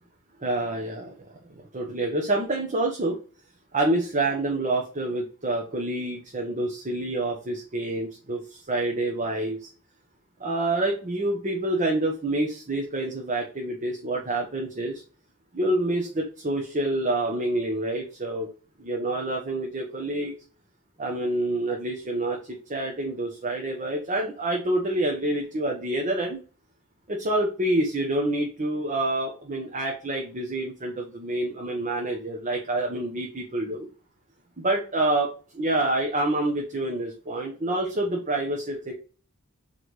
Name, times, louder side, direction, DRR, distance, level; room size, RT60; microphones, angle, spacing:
voice 1, 0.4-1.2 1.5-3.2 3.7-9.7 10.4-15.0 15.5-18.5 18.8-20.3 21.0-26.4 27.1-33.9 34.6-38.9, right 1 dB, 35° right, 0 dB, 1.2 m, -27 dB
8.0 x 3.6 x 3.3 m, 0.37 s
head